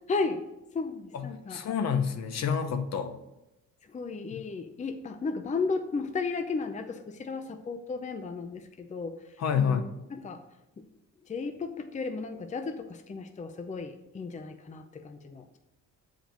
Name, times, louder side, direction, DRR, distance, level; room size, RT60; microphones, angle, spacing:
voice 1, 0.1-0.4 0.7-1.6 3.8-10.4 10.8-10.9 11.2-15.6, left 4 dB, 25° left, 7 dB, 0.6 m, -34 dB
voice 2, 1.5-3.1 9.4-9.9, left 7 dB, 60° left, 7 dB, 0.9 m, -28 dB
7.5 x 5.1 x 5.2 m, 0.93 s
cardioid pair, 90°, 30 cm